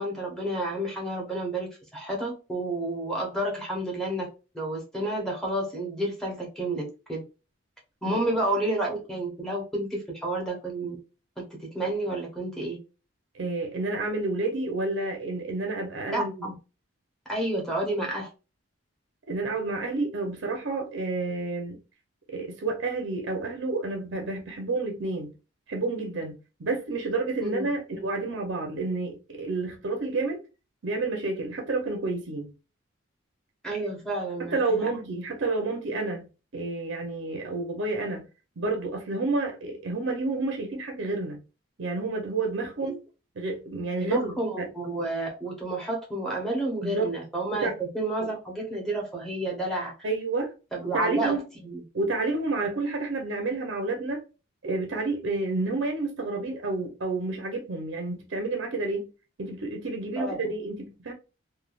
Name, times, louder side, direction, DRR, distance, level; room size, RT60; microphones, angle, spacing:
voice 1, 0.0-4.3 4.5-7.2 8.0-11.0 11.4-11.5 11.7-12.8 16.1-16.5 17.3-18.3 27.4-27.7 33.6-34.9 42.9-43.0 44.0-49.9 50.7-51.8 60.2-60.5, right 1 dB, ahead, 0.8 m, -30 dB
voice 2, 13.3-16.5 19.3-21.8 22.3-25.3 25.7-26.3 26.6-30.4 30.8-32.5 34.5-36.3 36.5-38.2 38.6-41.4 41.8-43.0 43.4-44.7 46.8-47.1 47.6-47.7 50.0-50.5 50.8-51.4 51.9-54.2 54.6-59.1 59.4-61.1, right 3 dB, 60° right, 0.6 m, -30 dB
3.2 x 2.2 x 2.3 m
head